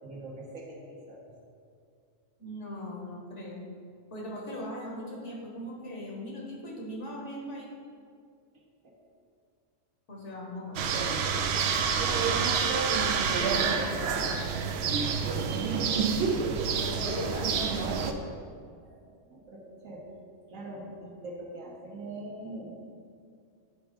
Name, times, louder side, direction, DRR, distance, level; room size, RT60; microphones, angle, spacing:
voice 1, 0.0-1.3 8.8-8.9 10.6-11.2 11.9-12.5 13.3-15.2 18.8-19.0 19.2-20.0 20.5-22.7, right 1 dB, 85° right, -3 dB, 1.7 m, -43 dB
voice 2, 2.4-3.6 4.1-7.7 10.1-11.1 16.0-16.5 16.8-18.0, left 1 dB, 60° left, -3 dB, 1.7 m, -39 dB
sound 1, 10.8-18.1, right 6 dB, 65° right, 0.7 m, -28 dB
9.4 x 3.6 x 4.9 m, 2.3 s
omnidirectional pair, 1.4 m